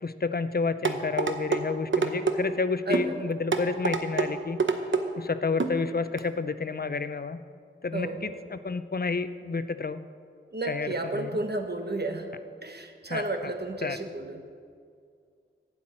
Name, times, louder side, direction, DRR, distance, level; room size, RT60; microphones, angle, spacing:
voice 1, 0.0-4.6 5.2-7.4 7.8-10.0 10.7-10.9 11.1-11.3 13.1-13.5 13.8-14.0, left 4 dB, 50° left, 12 dB, 0.5 m, -30 dB
sound 1, 0.8-1.6 1.9-2.4 2.9-3.1 3.5-4.3 4.6-5.0 5.6-5.8 6.2-6.3, right 4 dB, 65° right, 0.8 m, -25 dB
voice 2, 2.9-3.2 7.9-8.4 10.5-12.3 12.6-14.4, right 2 dB, 50° right, 5 dB, 1.2 m, -32 dB
11.5 x 5.9 x 8.7 m, 2.2 s
wide cardioid pair, 55°, 21 cm